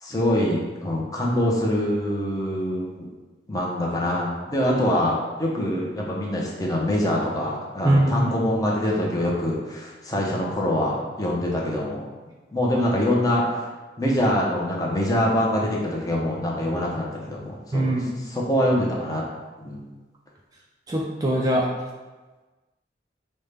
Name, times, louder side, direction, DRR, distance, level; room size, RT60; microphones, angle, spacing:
voice 1, 0.0-2.9 3.5-12.0 12.5-13.6 14.0-18.0 18.3-19.2 19.6-19.8, left 1 dB, 20° left, -3 dB, 0.6 m, -24 dB
voice 2, 7.8-8.3 17.7-18.1 20.9-21.6, right 1 dB, 20° right, -2 dB, 0.3 m, -21 dB
5.3 x 2.1 x 3.3 m, 1.2 s
head